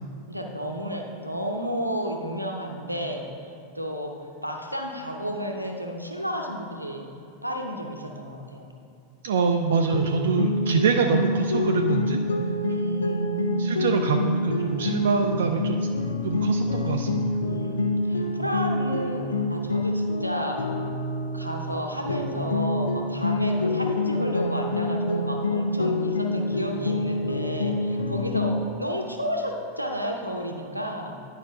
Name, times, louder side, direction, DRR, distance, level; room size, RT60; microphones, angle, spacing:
voice 1, 0.3-4.1 4.4-7.1 7.4-8.7 12.7-13.5 17.4-20.6 21.3-31.1, equal, 90° right, 2 dB, 0.7 m, -32 dB
voice 2, 9.2-12.2 12.7-12.8 13.6-15.9 16.2-17.3, right 5 dB, 60° right, 4 dB, 0.4 m, -25 dB
sound 1, 9.9-21.8 22.1-28.6, left 2 dB, 70° left, 0.5 m, -26 dB
10.5 x 4.9 x 3.5 m, 2.6 s
figure-of-eight pair, 90°, 0 cm